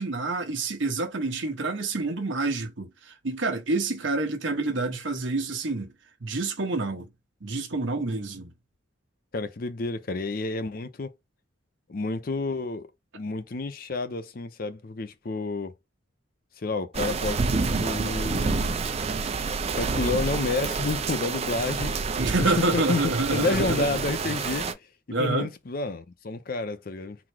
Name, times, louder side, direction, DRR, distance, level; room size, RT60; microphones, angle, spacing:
voice 1, 0.0-5.9 6.2-7.1 7.4-8.5 22.2-23.9 25.1-25.5, right 3 dB, 75° right, 1.1 m, -28 dB
voice 2, 9.3-11.1 11.9-12.9 13.1-15.7 16.6-18.7 19.7-21.9 22.4-23.0 23.3-24.8 25.2-27.2, left 3 dB, 50° left, 0.5 m, -30 dB
sound 1, 16.9-24.7, right 4 dB, 30° right, 0.4 m, -28 dB
4.0 x 2.1 x 4.5 m
head